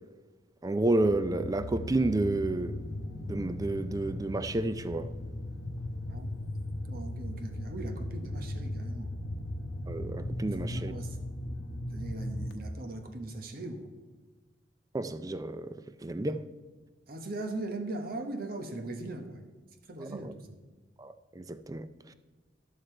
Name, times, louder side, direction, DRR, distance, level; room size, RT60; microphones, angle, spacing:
voice 1, 0.6-2.8 3.2-5.1 9.9-10.9 14.9-16.4 20.1-20.3 21.0-22.1, right 2 dB, 20° right, 0.4 m, -31 dB
sound 1, 1.0-12.5, left 1 dB, 65° left, 0.9 m, -37 dB
voice 2, 6.9-9.1 10.5-11.2 11.9-13.9 17.1-19.4 19.9-20.6, right 2 dB, 55° right, 1.0 m, -39 dB
12.5 x 6.5 x 4.4 m
head